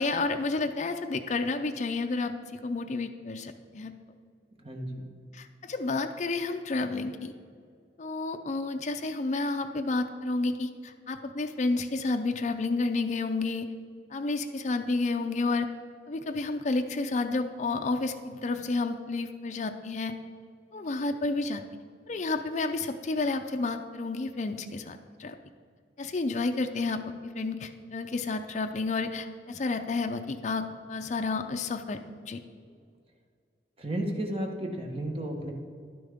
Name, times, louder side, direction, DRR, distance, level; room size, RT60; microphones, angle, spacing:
voice 1, 0.0-3.9 5.3-7.3 8.0-13.7 14.1-15.7 16.1-20.2 20.7-21.6 22.1-25.3 26.0-32.4, left 3 dB, 40° left, 5 dB, 0.4 m, -30 dB
voice 2, 4.6-5.1 32.5-32.7 33.8-35.5, right 1 dB, 30° right, 1 dB, 1.2 m, -33 dB
11.0 x 10.0 x 3.5 m, 2.1 s
head